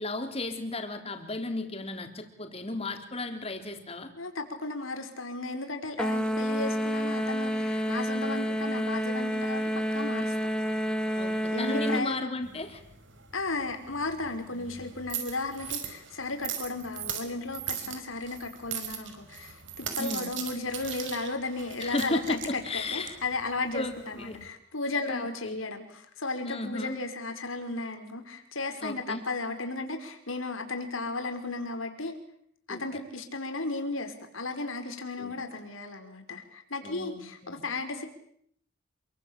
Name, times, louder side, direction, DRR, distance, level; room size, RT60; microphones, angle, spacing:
voice 1, 0.0-4.1 11.2-12.8 17.9-18.0 20.0-20.3 21.8-23.2 23.7-24.4 25.1-25.6 26.4-27.0 28.8-29.3 32.7-32.8 35.2-35.4 36.8-37.6, left 2 dB, 30° left, 6 dB, 3.9 m, -34 dB
voice 2, 4.2-10.3 11.5-12.4 13.3-32.2 32.7-38.1, left 3 dB, 90° left, 5 dB, 5.1 m, -35 dB
sound 1, 6.0-12.1, equal, 5° left, 2.5 m, -29 dB
sound 2, 12.4-24.5, right 8 dB, 70° right, 5.5 m, -40 dB
28.0 x 23.0 x 8.9 m, 0.67 s
head